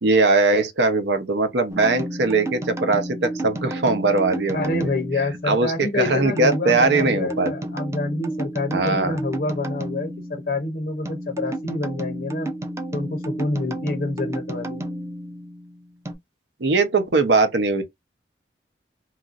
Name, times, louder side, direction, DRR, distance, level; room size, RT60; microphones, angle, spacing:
voice 1, 0.0-4.9 5.5-7.5 8.7-9.2 16.6-17.8, right 3 dB, 85° right, 0.7 m, -20 dB
sound 1, 1.7-16.1, right 1 dB, 15° right, 0.4 m, -32 dB
voice 2, 4.5-12.5 12.9-14.8, left 2 dB, 60° left, 0.5 m, -27 dB
3.0 x 2.4 x 2.4 m
head